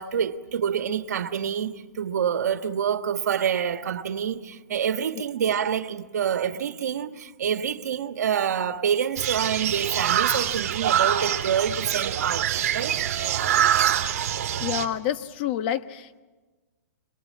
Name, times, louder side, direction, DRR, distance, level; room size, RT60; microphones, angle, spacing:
voice 1, 0.0-13.0, right 8 dB, 80° right, 1.6 m, -27 dB
sound 1, 9.2-14.9, right 10 dB, 55° right, 2.7 m, -25 dB
voice 2, 14.6-16.2, left 10 dB, 35° left, 1.1 m, -28 dB
26.5 x 22.5 x 8.7 m
hypercardioid pair, 160°, 9 cm